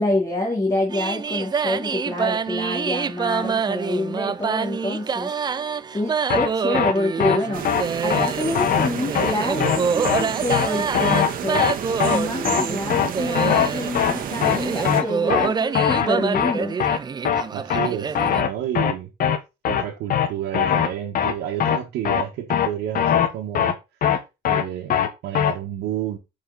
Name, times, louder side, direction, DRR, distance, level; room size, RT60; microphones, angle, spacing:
voice 1, 0.0-5.3 5.9-7.6 8.0-11.7 12.1-16.8, left 1 dB, 20° left, 2.5 m, -27 dB
sound 1, 0.9-18.4, right 6 dB, 25° right, 0.5 m, -26 dB
sound 2, 6.3-6.5 6.7-6.9 7.2-7.4 7.7-7.8 8.1-8.3 8.6-8.9 9.2-9.3 9.6-9.8 10.1-10.2 10.5-10.7 10.9-11.3 11.6-11.7 12.0-12.2 12.5-12.6 12.9-13.1 13.4-13.7 14.0-14.1 14.4-14.6 14.9-15.0 15.3-15.5 15.8-16.1 16.3-16.5 16.8-17.0 17.3-17.4 17.7-17.9 18.2-18.5 18.8-18.9 19.2-19.4 19.7-19.8 20.1-20.3 20.5-20.9 21.2-21.3 21.6-21.8 22.1-22.2 22.5-22.7 23.0-23.3 23.6-23.7 24.0-24.2 24.5-24.6 24.9-25.1 25.4-25.5, left 9 dB, 55° left, 1.4 m, -20 dB
sound 3, 7.5-15.0, right 8 dB, 55° right, 1.4 m, -31 dB
voice 2, 17.5-19.1 19.7-23.8 24.5-26.2, right 11 dB, 80° right, 1.6 m, -30 dB
10.5 x 5.0 x 4.1 m
cardioid pair, 110°, 17 cm